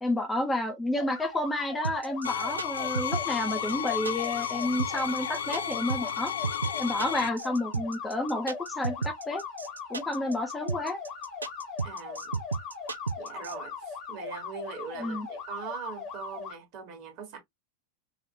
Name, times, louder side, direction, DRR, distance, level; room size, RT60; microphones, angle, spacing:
voice 1, 0.0-6.3 6.8-9.4 9.9-11.0 15.0-15.3, left 1 dB, 10° left, 0.7 m, -30 dB
sound 1, 0.9-16.5, left 5 dB, 40° left, 1.3 m, -40 dB
sound 2, 1.8-13.5, right 4 dB, 75° right, 0.4 m, -33 dB
sound 3, 2.2-7.3, left 10 dB, 65° left, 0.3 m, -33 dB
voice 2, 11.8-12.4 13.2-17.4, right 6 dB, 45° right, 1.3 m, -41 dB
4.1 x 2.4 x 2.7 m
figure-of-eight pair, 90°, 0 cm